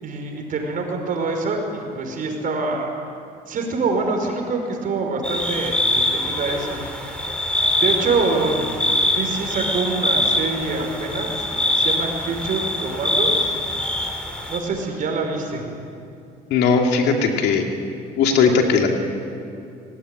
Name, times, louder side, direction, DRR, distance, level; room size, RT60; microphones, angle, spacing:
voice 1, 0.0-3.0 3.5-6.8 7.0-7.4 7.7-8.7 9.1-13.6 14.5-15.7, right 3 dB, 55° right, 3 dB, 5.3 m, -25 dB
sound 1, 5.2-14.6, left 1 dB, 5° left, 4.0 m, -23 dB
voice 2, 16.5-17.6 18.2-18.9, left 5 dB, 80° left, 2 dB, 2.6 m, -18 dB
23.5 x 18.5 x 9.9 m, 2.6 s
cardioid pair, 110°, 17 cm